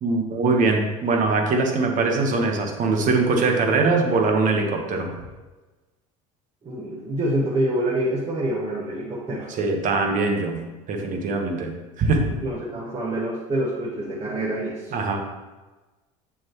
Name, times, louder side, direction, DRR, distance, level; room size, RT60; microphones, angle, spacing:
voice 1, 0.0-5.1 9.6-10.6 10.9-12.3 14.9-15.2, right 3 dB, 50° right, 3 dB, 1.3 m, -22 dB
voice 2, 6.6-9.5 12.2-14.9, right 1 dB, 30° right, -5 dB, 1.6 m, -26 dB
7.4 x 6.1 x 3.1 m, 1.2 s
hypercardioid pair, 85°, 17 cm